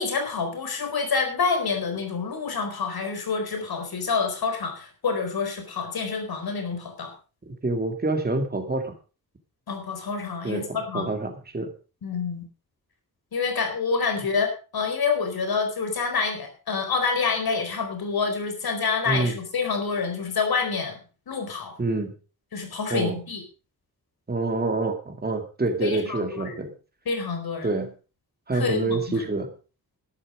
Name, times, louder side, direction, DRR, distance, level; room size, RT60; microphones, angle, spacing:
voice 1, 0.0-7.1 9.7-11.1 12.0-12.4 13.3-14.5 14.7-21.0 21.3-21.8 22.5-23.4 25.8-26.6 27.1-27.8 28.5-29.2, left 5 dB, 85° left, 5 dB, 4.5 m, -27 dB
voice 2, 7.6-8.9 10.4-10.6 10.9-11.7 19.1-19.3 21.8-22.1 22.9-23.2 24.3-26.7 27.6-27.9 28.5-29.5, right 2 dB, 25° right, 5 dB, 2.4 m, -26 dB
12.5 x 11.5 x 5.1 m, 0.35 s
wide cardioid pair, 165°, 36 cm